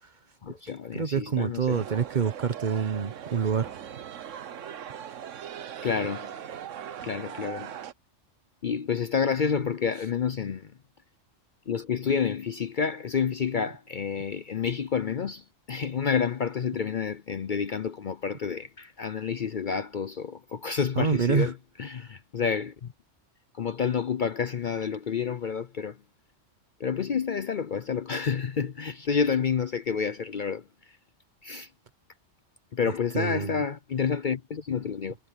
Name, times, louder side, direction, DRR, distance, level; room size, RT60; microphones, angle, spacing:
voice 1, 0.4-1.8 5.8-6.3 7.0-7.7 8.6-10.7 11.7-21.5 21.8-22.9 23.5-26.0 26.8-30.6 31.4-31.7 32.7-35.1, left 6 dB, 50° left, 0.7 m, -29 dB
voice 2, 0.9-3.7 21.0-21.5 32.8-33.6, right 6 dB, 45° right, 0.9 m, -27 dB
sound 1, 1.7-7.9, right 9 dB, 80° right, 1.2 m, -40 dB
omnidirectional pair, 1.3 m